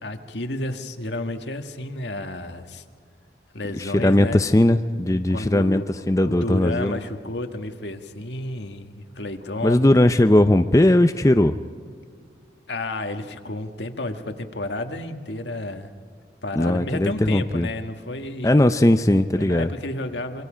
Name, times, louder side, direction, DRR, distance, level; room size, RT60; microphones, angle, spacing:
voice 1, 0.0-2.8 3.5-4.4 5.3-5.9 6.2-9.8 12.7-15.9 16.4-18.6 19.4-20.4, left 2 dB, 80° left, 6 dB, 1.6 m, -31 dB
voice 2, 3.7-7.0 9.6-11.5 16.6-17.7 18.4-19.7, left 1 dB, 20° left, 9 dB, 0.5 m, -18 dB
26.5 x 24.5 x 5.1 m, 2.1 s
head